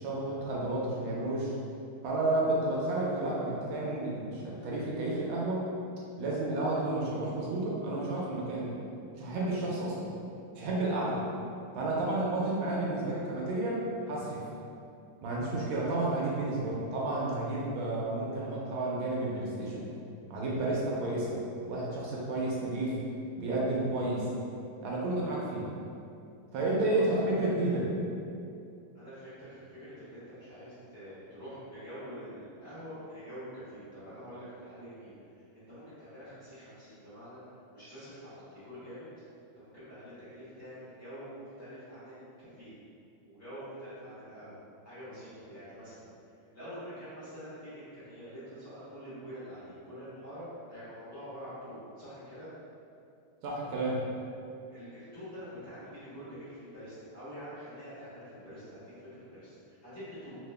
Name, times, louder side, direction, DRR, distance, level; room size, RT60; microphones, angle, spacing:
voice 1, 0.0-1.5 2.0-5.6 6.2-8.7 9.2-10.1 10.6-11.2 11.7-14.4 15.2-19.8 20.3-21.4 21.7-23.0 23.4-24.3 24.8-25.7 26.5-27.9 53.4-54.0, right 2 dB, 75° right, -5 dB, 1.4 m, -31 dB
voice 2, 26.9-27.5 28.9-37.4 37.7-39.1 39.5-42.7 43.2-44.6 44.8-50.4 50.7-52.5 54.7-60.4, equal, 35° left, -14 dB, 1.2 m, -46 dB
3.5 x 2.9 x 3.3 m, 2.6 s
omnidirectional pair, 2.4 m